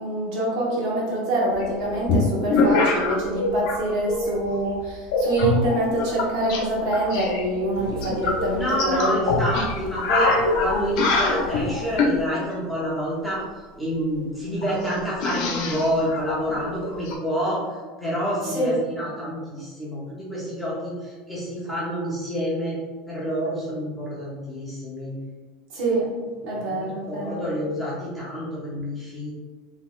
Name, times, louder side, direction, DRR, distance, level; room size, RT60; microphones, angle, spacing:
voice 1, 0.0-9.3 18.4-18.9 25.7-26.1 26.4-27.4, right 1 dB, 55° right, -4 dB, 1.1 m, -25 dB
sound 1, 1.6-3.8 4.1-4.5 5.1-6.6 6.9-12.2 13.9-14.0 14.2-14.3 14.6-17.1, left 3 dB, 60° left, 0.6 m, -24 dB
voice 2, 8.5-13.4 13.8-17.7 18.0-22.8 23.1-25.1 26.8-29.3, equal, ahead, -8 dB, 0.6 m, -28 dB
3.8 x 2.9 x 2.4 m, 1.3 s
supercardioid pair, 180°, 4 cm